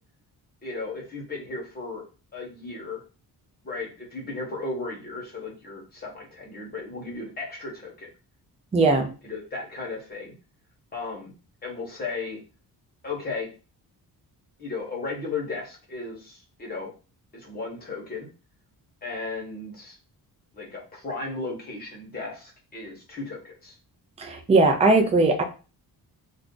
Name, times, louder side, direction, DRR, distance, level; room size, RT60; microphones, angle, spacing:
voice 1, 0.6-2.0 2.3-3.0 3.6-8.1 9.2-10.3 10.9-11.3 11.6-12.4 13.0-13.5 14.6-16.9 17.3-18.3 19.0-20.0 20.5-23.7, left 3 dB, 25° left, -2 dB, 1.0 m, -35 dB
voice 2, 8.7-9.1 24.2-25.4, right 3 dB, 20° right, 5 dB, 0.3 m, -19 dB
2.5 x 2.4 x 3.6 m, 0.33 s
wide cardioid pair, 180°, 38 cm